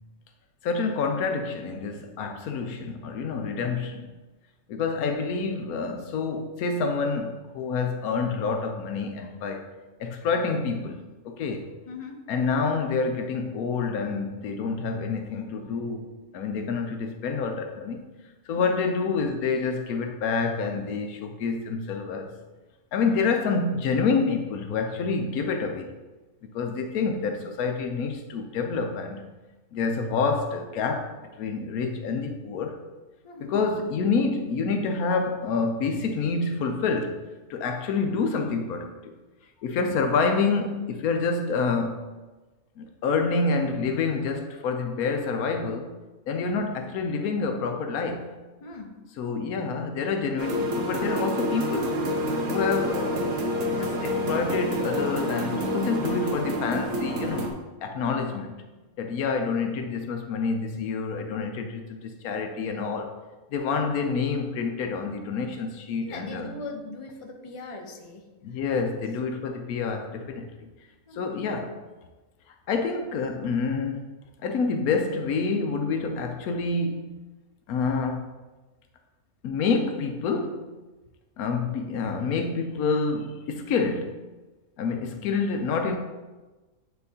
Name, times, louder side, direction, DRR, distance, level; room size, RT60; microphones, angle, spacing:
voice 1, 0.6-4.1 4.7-9.7 10.0-11.7 12.3-16.1 16.3-18.0 18.5-22.3 22.9-25.9 26.5-29.2 29.7-32.8 33.5-37.2 37.5-39.1 39.6-42.0 42.8-45.9 46.3-48.3 49.2-51.9 52.5-53.4 53.7-57.5 57.8-58.6 59.0-63.1 63.5-66.5 68.4-70.7 71.1-71.7 72.7-74.0 74.4-77.1 77.7-78.3 79.4-80.7 81.4-84.2 84.8-86.0, left 4 dB, 85° left, 4 dB, 1.1 m, -27 dB
voice 2, 11.9-12.3 18.5-18.8 33.2-33.6 37.7-37.8 48.6-49.0 54.3-54.6 66.0-69.0 71.1-71.3, left 3 dB, 35° left, 2 dB, 0.6 m, -40 dB
sound 1, 50.4-57.5, equal, 60° right, 1.0 m, -28 dB
8.5 x 4.4 x 2.8 m, 1.2 s
omnidirectional pair, 1.5 m